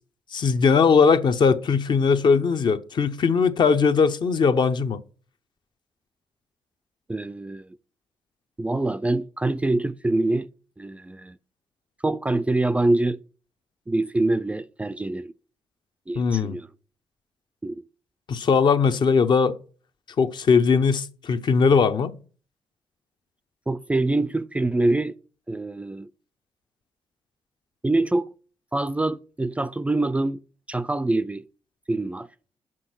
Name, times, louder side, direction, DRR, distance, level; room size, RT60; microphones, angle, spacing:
voice 1, 0.3-5.0 16.1-16.6 18.3-19.5 20.2-22.1, left 5 dB, 55° left, 0.7 m, -20 dB
voice 2, 7.1-7.7 8.6-10.5 10.8-11.4 12.0-13.2 13.9-15.3 16.1-16.7 17.6-17.8 23.7-25.1 25.5-26.1 27.8-28.3 28.7-30.4 30.7-31.4 31.9-32.3, right 2 dB, 15° right, 0.3 m, -25 dB
6.1 x 5.2 x 6.0 m
cardioid pair, 80°, 9 cm